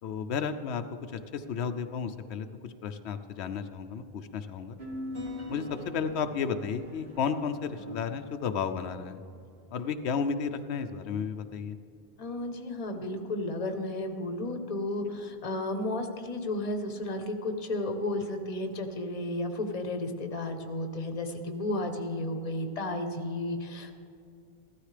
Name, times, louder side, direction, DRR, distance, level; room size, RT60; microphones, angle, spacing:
voice 1, 0.0-4.8 5.5-9.2 9.7-11.8, left 6 dB, 90° left, 9 dB, 0.9 m, -33 dB
sound 1, 4.8-9.3, left 1 dB, 45° right, 1.8 m, -42 dB
voice 2, 12.2-23.9, left 1 dB, 35° left, 6 dB, 1.0 m, -33 dB
15.0 x 13.0 x 3.3 m, 2.5 s
omnidirectional pair, 1.1 m